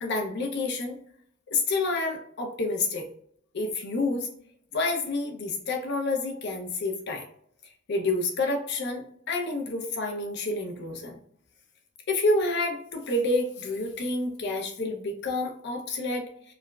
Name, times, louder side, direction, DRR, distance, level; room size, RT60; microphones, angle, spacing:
voice 1, 0.0-1.0 1.5-3.1 3.5-4.3 4.7-7.3 7.9-11.2 12.1-16.5, left 2 dB, 60° left, 3 dB, 0.5 m, -29 dB
4.7 x 2.0 x 2.2 m, 0.66 s
head